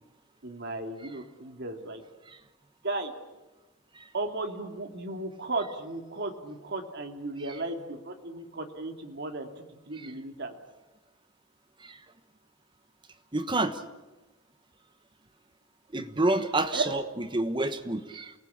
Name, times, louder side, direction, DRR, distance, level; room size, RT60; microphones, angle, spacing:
voice 1, 0.4-2.0 2.8-3.1 4.1-9.5 9.9-10.5 16.7-17.0, right 2 dB, 55° right, 4 dB, 2.7 m, -35 dB
voice 2, 13.3-13.8 15.9-17.0 17.3-18.3, right 2 dB, 25° right, 10 dB, 1.2 m, -28 dB
28.5 x 19.5 x 8.7 m, 1.1 s
head